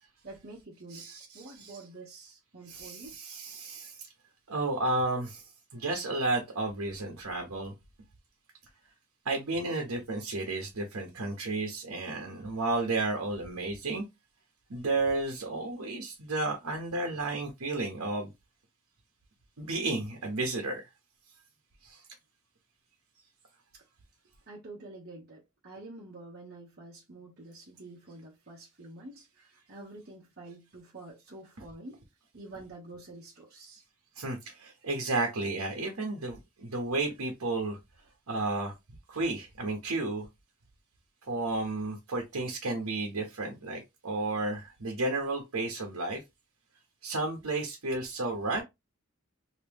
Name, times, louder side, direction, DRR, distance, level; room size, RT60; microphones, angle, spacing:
voice 1, 0.2-1.1 1.3-3.1 23.7-23.8 24.5-32.0 32.3-33.8, right 2 dB, 45° right, 1.0 m, -48 dB
voice 2, 0.9-1.8 2.7-4.0 4.5-5.4 5.7-7.7 9.2-14.0 14.7-18.3 19.6-20.8 21.8-22.0 34.2-37.8 38.3-38.7 39.1-40.3 41.3-46.2 47.0-48.6, right 2 dB, 80° right, 1.0 m, -32 dB
3.0 x 2.9 x 3.4 m
head